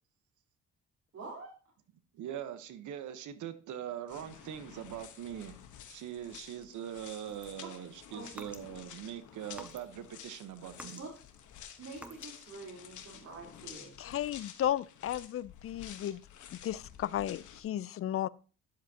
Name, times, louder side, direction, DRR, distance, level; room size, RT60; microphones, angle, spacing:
voice 1, 1.1-1.5 8.1-8.3 11.0-11.1 11.8-14.0, right 3 dB, 55° right, 3.7 m, -46 dB
voice 2, 2.1-5.6 5.9-11.0, right 10 dB, 80° right, 1.0 m, -42 dB
sound 1, 4.1-17.6, left 9 dB, 75° left, 1.2 m, -51 dB
sound 2, 7.3-9.0 9.5-10.2 10.5-12.4, equal, 5° right, 1.0 m, -51 dB
voice 3, 14.0-16.2 16.5-18.3, left 11 dB, 50° left, 0.4 m, -34 dB
10.0 x 7.5 x 2.8 m
cardioid pair, 90°, 30 cm